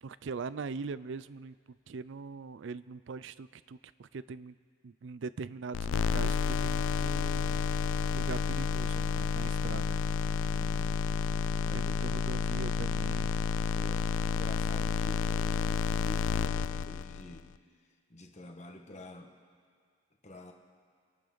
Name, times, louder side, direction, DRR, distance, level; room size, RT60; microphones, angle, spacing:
voice 1, 0.0-1.5 1.9-4.5 4.8-7.6 8.1-10.0 11.7-13.4, right 4 dB, 65° right, 17 dB, 0.4 m, -41 dB
sound 1, 5.7-17.4, left 5 dB, 70° left, 0.4 m, -30 dB
voice 2, 11.6-12.0 13.7-17.5 17.8-19.3 20.2-20.5, left 1 dB, 35° left, 3 dB, 1.4 m, -49 dB
29.0 x 11.5 x 4.0 m, 2.1 s
head